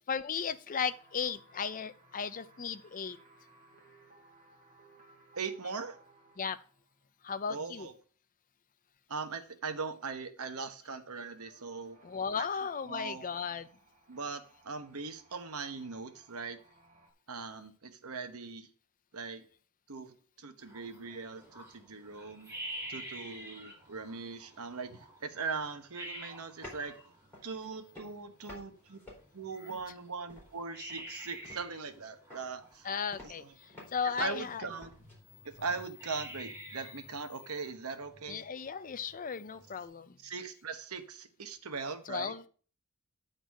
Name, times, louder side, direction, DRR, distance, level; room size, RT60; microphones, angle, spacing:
voice 1, 0.1-3.2 6.4-6.6 7.2-7.9 12.0-13.7 32.8-33.4 33.9-34.6 38.3-40.2 42.1-42.5, left 6 dB, 40° left, 13 dB, 0.5 m, -35 dB
sound 1, 0.8-7.0 11.3-17.1, right 2 dB, 35° right, 1.9 m, -62 dB
voice 2, 5.3-6.0 7.5-7.9 9.1-12.0 12.4-12.5 12.9-13.3 14.1-16.6 17.3-18.7 19.1-19.5 19.9-22.6 22.9-27.0 27.4-29.0 29.3-32.9 33.4-33.5 34.2-34.9 35.5-38.4 40.2-42.3, right 4 dB, 70° right, 8 dB, 1.1 m, -40 dB
sound 2, 20.6-39.9, equal, 15° right, 3.6 m, -49 dB
sound 3, 26.6-27.0 27.3-27.7 27.9-28.7 28.9-30.0 30.3-30.6 30.9-31.9 32.3-35.2, left 1 dB, 10° left, 4.1 m, -50 dB
9.3 x 4.0 x 6.4 m, 0.41 s
head